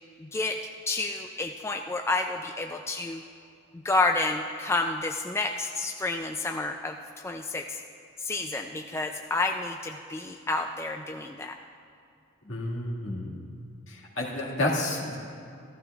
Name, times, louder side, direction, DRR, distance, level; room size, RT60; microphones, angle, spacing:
voice 1, 0.2-0.6 0.9-3.2 3.7-7.8 8.2-11.6, left 2 dB, 15° left, 4 dB, 0.3 m, -30 dB
voice 2, 12.5-13.4 13.9-15.2, left 1 dB, 70° left, -3 dB, 1.9 m, -30 dB
15.0 x 14.5 x 2.4 m, 2.4 s
head